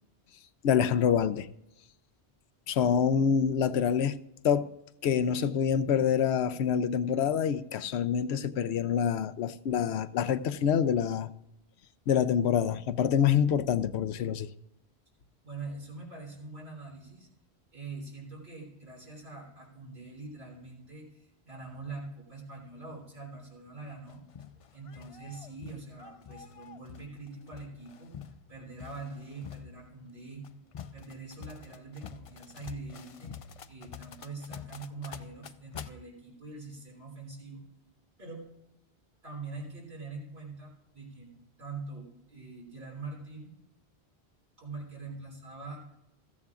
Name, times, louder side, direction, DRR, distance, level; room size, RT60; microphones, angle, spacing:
voice 1, 0.6-1.5 2.7-4.2 4.4-4.7 5.0-11.3 12.1-14.5, left 8 dB, 85° left, 0.9 m, -26 dB
voice 2, 15.4-17.3 17.7-24.2 24.7-28.2 28.5-30.4 30.9-33.4 33.7-37.6 38.2-38.5 39.2-41.3 41.6-43.5 44.6-46.0, right 3 dB, 70° right, 3.7 m, -44 dB
sound 1, 24.1-35.9, left 7 dB, 55° left, 0.3 m, -47 dB
15.5 x 14.0 x 2.4 m
omnidirectional pair, 1.1 m